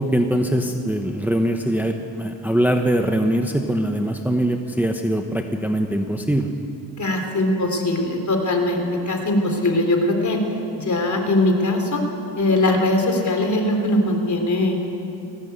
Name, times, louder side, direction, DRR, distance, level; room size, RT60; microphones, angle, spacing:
voice 1, 0.0-6.5, right 1 dB, 5° right, 4 dB, 1.0 m, -22 dB
voice 2, 7.0-10.4 10.8-12.0 12.4-14.8, left 1 dB, 40° left, 3 dB, 3.6 m, -21 dB
19.0 x 16.5 x 8.1 m, 2.7 s
cardioid pair, 100°, 43 cm